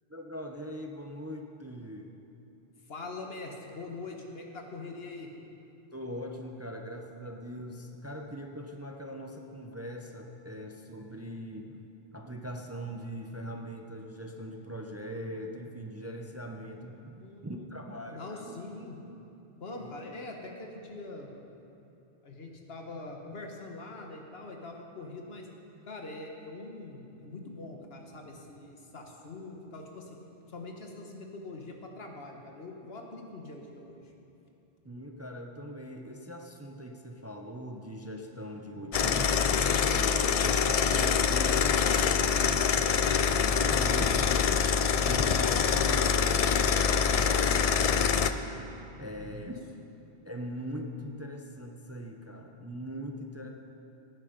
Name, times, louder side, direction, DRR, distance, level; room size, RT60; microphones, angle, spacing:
voice 1, 0.1-2.1 5.9-18.6 19.8-19.9 34.8-39.5 39.9-44.1 44.4-44.6 45.1-49.5 50.2-53.5, equal, 15° right, 2 dB, 0.6 m, -41 dB
voice 2, 2.9-5.3 17.1-17.7 18.1-19.0 19.6-21.3 22.2-25.5 25.9-30.2 30.5-34.0 38.7-38.9 43.7-44.1 49.2-49.5, left 2 dB, 75° left, 2 dB, 1.6 m, -43 dB
sound 1, 38.9-48.3, left 6 dB, 50° left, 0.4 m, -25 dB
17.0 x 9.1 x 5.2 m, 2.9 s
omnidirectional pair, 1.0 m